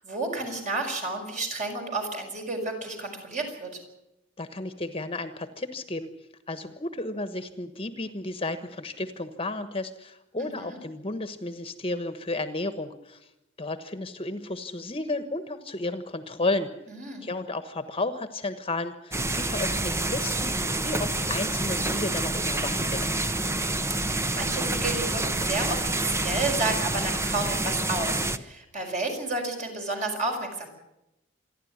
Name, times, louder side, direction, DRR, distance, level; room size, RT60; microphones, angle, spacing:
voice 1, 0.0-3.8 10.4-10.8 16.9-17.3 23.9-30.7, right 2 dB, 40° right, 2 dB, 6.1 m, -31 dB
voice 2, 4.4-6.1 6.5-13.2 13.6-16.7 17.2-20.5 20.8-23.2, left 2 dB, 30° left, 10 dB, 1.3 m, -33 dB
sound 1, 19.1-28.4, right 2 dB, 15° right, 0.9 m, -28 dB
27.5 x 11.5 x 9.8 m, 0.89 s
head